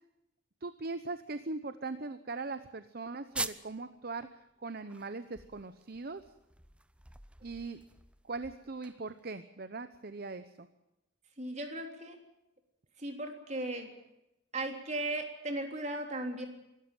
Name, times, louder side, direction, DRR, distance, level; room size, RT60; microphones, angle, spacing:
voice 1, 0.6-6.2 7.4-7.8 8.2-10.7, right 3 dB, 55° right, 11 dB, 0.9 m, -40 dB
sound 1, 3.3-3.8 4.2-4.3 4.7-9.4, right 2 dB, 5° right, 0.7 m, -43 dB
voice 2, 11.4-12.2 13.0-13.9 14.5-16.5, right 1 dB, 40° right, 4 dB, 3.3 m, -36 dB
24.0 x 13.5 x 9.0 m, 0.90 s
head